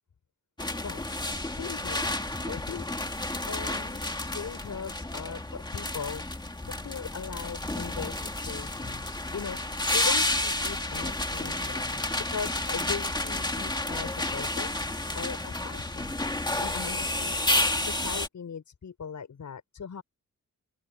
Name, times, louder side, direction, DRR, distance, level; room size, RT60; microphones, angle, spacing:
sound 1, 0.6-18.3, left 2 dB, 15° left, 2.1 m, -31 dB
voice 1, 1.5-2.1 2.5-2.9 3.5-11.9 12.3-14.9 15.1-17.4 17.8-20.0, left 6 dB, 65° left, 6.1 m, -39 dB
open air
wide cardioid pair, 125°, 32 cm